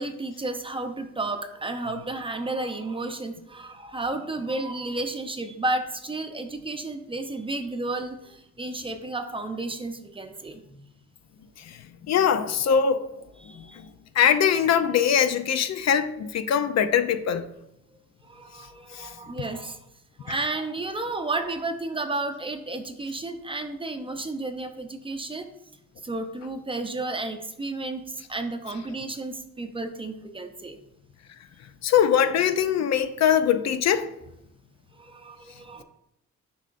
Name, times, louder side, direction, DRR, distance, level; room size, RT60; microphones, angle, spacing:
voice 1, 0.0-10.8 13.4-13.8 18.3-19.8 20.2-25.5 26.0-30.8 35.0-35.8, right 2 dB, 15° right, 0.6 m, -32 dB
voice 2, 12.1-13.1 13.6-13.7 14.2-17.4 18.9-19.1 31.8-34.1, left 8 dB, 60° left, 0.5 m, -22 dB
7.0 x 5.5 x 2.5 m
cardioid pair, 90°, 30 cm